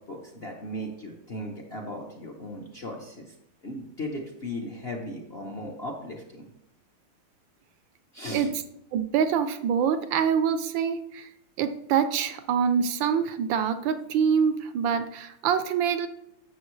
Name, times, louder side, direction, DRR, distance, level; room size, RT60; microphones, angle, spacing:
voice 1, 0.1-3.3 3.6-6.5 8.1-8.5, left 1 dB, 45° left, 1 dB, 0.8 m, -37 dB
voice 2, 8.9-11.3 11.6-16.1, right 7 dB, 75° right, 10 dB, 1.2 m, -25 dB
12.0 x 6.7 x 3.1 m, 0.82 s
omnidirectional pair, 2.3 m